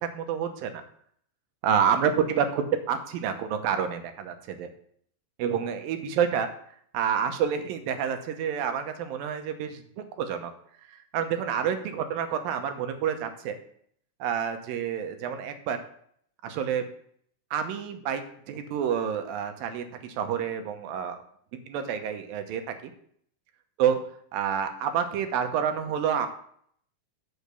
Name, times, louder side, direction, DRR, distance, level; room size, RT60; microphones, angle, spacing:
voice 1, 0.1-0.8 1.6-4.7 5.4-6.5 6.9-10.5 10.9-13.6 14.2-15.8 16.4-16.8 17.5-18.2 18.5-21.2 21.7-22.9 23.8-24.0 24.3-26.3, right 8 dB, 80° right, 7 dB, 2.6 m, -28 dB
6.5 x 6.2 x 6.7 m, 0.64 s
omnidirectional pair, 4.1 m